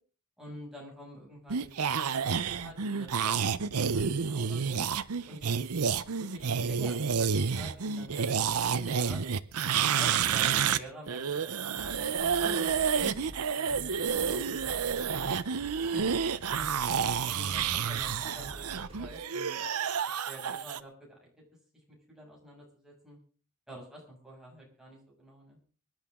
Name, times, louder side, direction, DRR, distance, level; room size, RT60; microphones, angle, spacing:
voice 1, 0.4-4.8 5.3-5.7 5.9-9.2 9.8-13.2 13.5-15.3 15.8-16.1 16.6-16.8 17.3-19.6 20.3-21.3 22.1-23.2 23.7-25.6, equal, ahead, -4 dB, 7.0 m, -48 dB
sound 1, 1.5-10.8 11.1-20.8, right 6 dB, 80° right, 0.8 m, -29 dB
sound 2, 11.8-19.2, equal, 30° right, 6.4 m, -48 dB
25.0 x 10.5 x 3.8 m, 0.40 s
head